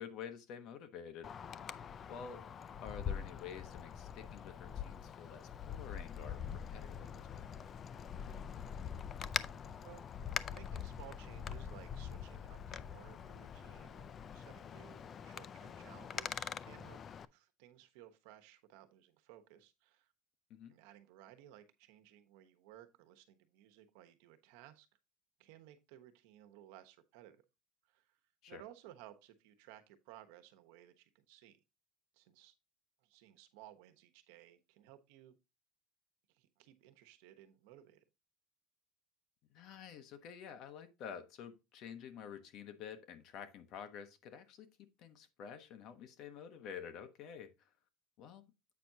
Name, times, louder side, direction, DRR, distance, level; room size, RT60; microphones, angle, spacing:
voice 1, 0.0-1.3 2.1-2.5 2.8-7.6 20.5-20.8 28.4-28.6 39.5-47.7 48.2-48.4, left 7 dB, 50° left, 1.1 m, -49 dB
Wind, 1.2-17.3, left 8 dB, 30° left, 0.3 m, -44 dB
voice 2, 10.5-17.0 17.3-20.1 20.7-24.9 25.4-27.4 27.8-28.2 28.5-31.6 32.1-32.5 33.0-35.4 36.3-38.0, right 13 dB, 80° right, 1.1 m, -58 dB
8.3 x 5.9 x 2.7 m
cardioid pair, 145°, 0 cm